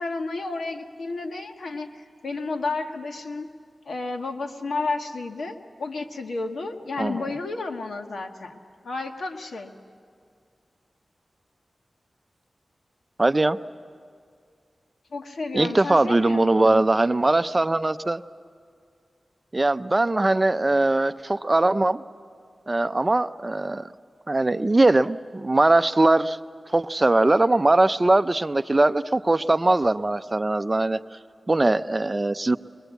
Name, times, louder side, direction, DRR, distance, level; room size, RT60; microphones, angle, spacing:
voice 1, 0.0-1.9 2.2-3.5 3.9-8.6 8.8-9.7 15.1-16.8, left 3 dB, 90° left, 4 dB, 1.3 m, -31 dB
voice 2, 7.0-7.3 13.2-13.6 15.5-18.2 19.5-22.0 22.7-23.9 24.3-26.4 26.7-31.0 31.5-32.6, right 2 dB, 30° right, 13 dB, 0.5 m, -21 dB
22.5 x 22.5 x 8.1 m, 2.2 s
wide cardioid pair, 70°, 0 cm